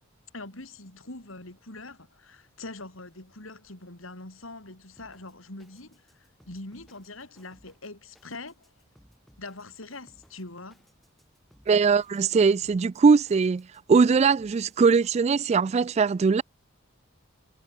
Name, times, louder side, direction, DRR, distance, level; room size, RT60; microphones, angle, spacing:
voice 1, 0.3-8.7 9.4-10.8, left 2 dB, 80° left, 4.4 m, -43 dB
Drum kit, 5.0-15.2, equal, ahead, 4.9 m, -62 dB
voice 2, 11.7-16.4, right 5 dB, 35° right, 0.3 m, -21 dB
head